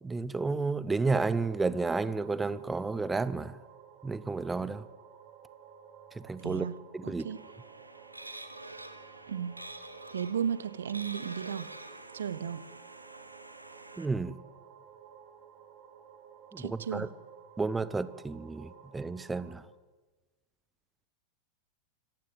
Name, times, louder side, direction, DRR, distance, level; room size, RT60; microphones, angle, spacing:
voice 1, 0.0-3.6 4.0-4.8 6.1-6.7 6.9-7.3 14.0-14.3 16.5-17.1 17.6-19.6, right 3 dB, 10° right, 0.8 m, -31 dB
sound 1, 1.0-19.5, right 8 dB, 40° right, 4.8 m, -54 dB
voice 2, 6.4-6.8 7.0-7.4 9.3-9.6 10.1-11.7 12.1-12.7 16.6-17.1, right 8 dB, 65° right, 0.9 m, -34 dB
sound 2, 7.3-14.1, right 2 dB, 85° right, 1.6 m, -47 dB
26.0 x 15.0 x 9.2 m
figure-of-eight pair, 90°, 0 cm